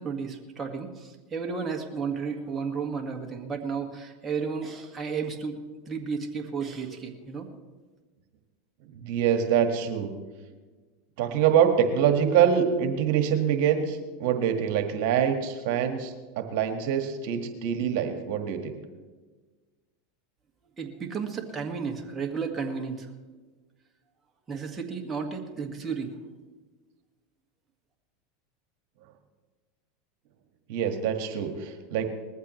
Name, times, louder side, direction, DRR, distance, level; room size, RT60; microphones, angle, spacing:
voice 1, 0.0-7.5 20.8-23.1 24.5-26.1, right 5 dB, 20° right, 1 dB, 1.8 m, -33 dB
voice 2, 9.0-10.1 11.2-18.7 30.7-32.1, right 8 dB, 65° right, 6 dB, 1.6 m, -25 dB
20.0 x 14.5 x 3.2 m, 1.3 s
supercardioid pair, 115°, 0 cm